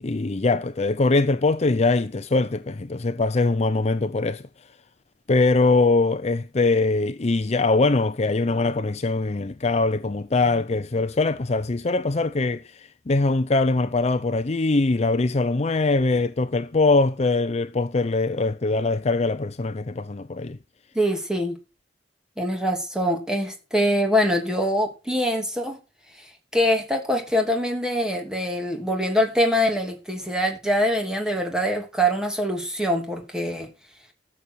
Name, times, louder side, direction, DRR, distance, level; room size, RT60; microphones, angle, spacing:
voice 1, 0.0-4.4 5.3-20.6, left 3 dB, 40° left, 0.6 m, -22 dB
voice 2, 20.9-21.6 22.4-25.8 26.2-33.7, equal, 5° right, 2.8 m, -24 dB
13.0 x 7.1 x 6.3 m
head